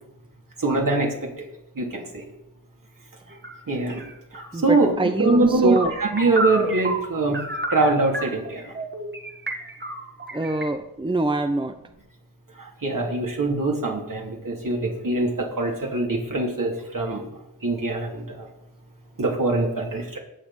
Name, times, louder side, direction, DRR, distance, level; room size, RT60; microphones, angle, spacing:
voice 1, 0.6-1.3 1.8-2.2 3.7-4.0 4.6-7.4 7.7-8.6 12.8-15.3 15.6-17.3 17.6-18.5 19.2-20.2, right 2 dB, 60° right, -1 dB, 3.1 m, -23 dB
sound 1, 3.3-3.6 3.9-10.7, right 1 dB, 30° right, 1.9 m, -30 dB
voice 2, 4.5-5.9 10.3-11.7, right 2 dB, 15° right, 8 dB, 0.7 m, -24 dB
17.5 x 6.9 x 4.3 m, 0.86 s
cardioid pair, 45°, 37 cm